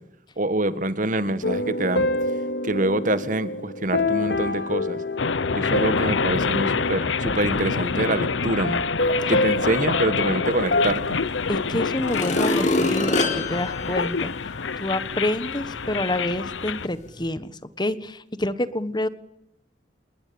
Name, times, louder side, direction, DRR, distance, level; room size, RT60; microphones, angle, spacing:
voice 1, 0.4-2.1 2.6-5.0 5.5-8.8 9.3-11.2, right 1 dB, 45° right, 1.6 m, -25 dB
sound 1, 1.4-8.1 8.6-11.2, left 2 dB, 65° left, 2.5 m, -27 dB
sound 2, 5.2-16.9, left 5 dB, 85° left, 0.9 m, -27 dB
sound 3, 11.3-11.4 11.9-14.8 15.3-15.4, left 2 dB, 40° left, 4.1 m, -25 dB
voice 2, 11.5-19.1, left 1 dB, 25° left, 1.3 m, -28 dB
28.0 x 21.0 x 8.8 m
head